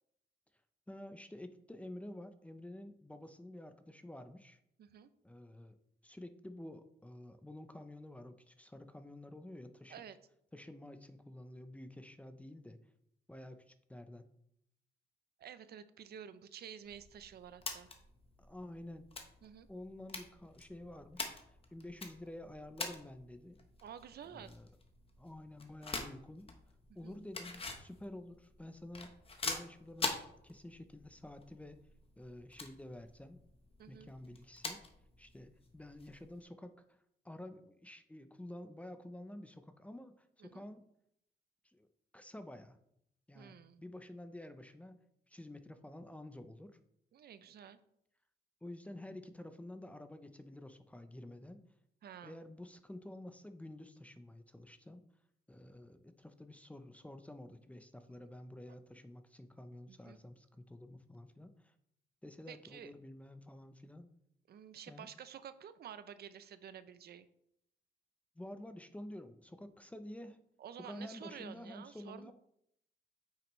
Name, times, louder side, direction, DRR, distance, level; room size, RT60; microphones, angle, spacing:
voice 1, 0.9-4.6 5.2-5.8 6.0-10.0 10.5-12.8 13.3-14.3 18.4-19.1 19.7-23.6 24.2-24.7 25.2-26.5 26.9-29.1 29.4-31.8 32.2-33.4 33.9-34.8 35.2-40.8 41.6-41.9 42.1-42.8 43.3-45.0 45.3-46.8 48.6-51.6 52.2-55.0 55.5-61.8 62.2-64.1 64.9-65.1 68.3-70.4 70.8-72.3, left 1 dB, 5° left, 9 dB, 0.5 m, -50 dB
voice 2, 4.8-5.1 9.9-10.2 15.4-17.9 19.4-19.7 23.8-24.5 27.0-27.2 33.8-34.1 40.4-40.6 43.3-43.8 47.1-47.8 52.0-52.4 59.9-60.2 62.5-62.9 64.5-67.3 70.6-72.3, right 8 dB, 60° right, 13 dB, 0.5 m, -51 dB
sound 1, 16.8-36.4, left 3 dB, 30° left, 1.0 m, -46 dB
8.4 x 6.0 x 3.1 m, 0.75 s
cardioid pair, 130°, 18 cm